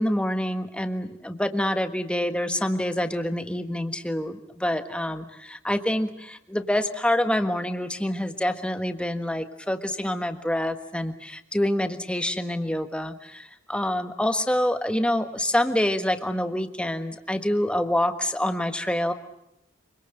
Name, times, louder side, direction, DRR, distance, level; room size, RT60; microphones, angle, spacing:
voice 1, 0.0-19.1, left 1 dB, 5° left, 8 dB, 1.5 m, -26 dB
26.0 x 24.5 x 7.9 m, 0.80 s
head